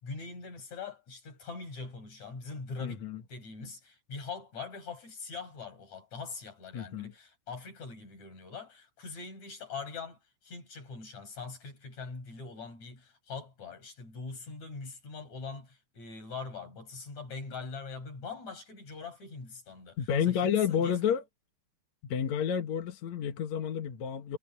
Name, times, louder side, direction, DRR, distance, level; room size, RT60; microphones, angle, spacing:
voice 1, 0.0-10.2 10.4-21.2, left 4 dB, 35° left, 7.4 m, -42 dB
voice 2, 2.8-3.2 6.7-7.1 20.0-21.2 22.0-24.4, left 8 dB, 60° left, 1.9 m, -30 dB
omnidirectional pair, 5.4 m